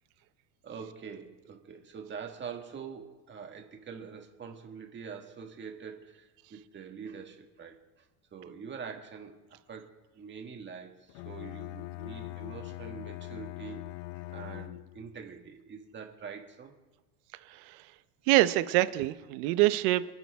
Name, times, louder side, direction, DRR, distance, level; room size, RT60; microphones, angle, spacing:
voice 1, 0.6-8.1 8.3-13.8 14.1-16.7, right 6 dB, 25° right, 3 dB, 1.8 m, -44 dB
Bowed string instrument, 11.1-15.2, left 18 dB, 55° left, 0.5 m, -42 dB
voice 2, 17.5-17.9 18.3-20.1, right 17 dB, 65° right, 13 dB, 1.0 m, -25 dB
28.5 x 10.5 x 3.6 m, 1.1 s
supercardioid pair, 140°, 48 cm